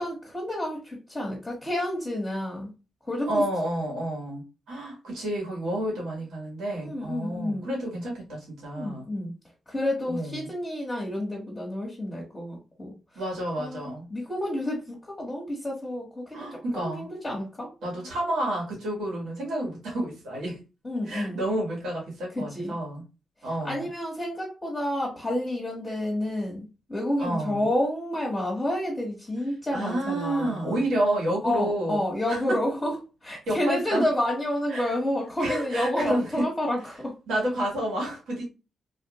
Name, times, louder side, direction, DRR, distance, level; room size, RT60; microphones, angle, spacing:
voice 1, 0.0-2.7 3.1-3.4 6.8-7.7 8.7-9.4 9.7-12.9 13.6-17.7 20.8-21.4 22.3-22.8 23.4-30.8 31.4-37.1, left 1 dB, 20° left, -4 dB, 1.2 m, -30 dB
voice 2, 3.3-9.0 10.1-10.5 13.1-14.1 16.3-17.1 17.8-20.6 21.1-23.0 23.4-23.9 27.2-27.7 29.7-32.0 32.3-32.4 33.5-34.0 34.7-34.9 35.4-36.4 37.3-38.5, right 1 dB, 85° right, -3 dB, 1.8 m, -30 dB
3.1 x 2.5 x 3.0 m, 0.30 s
cardioid pair, 85°, 0 cm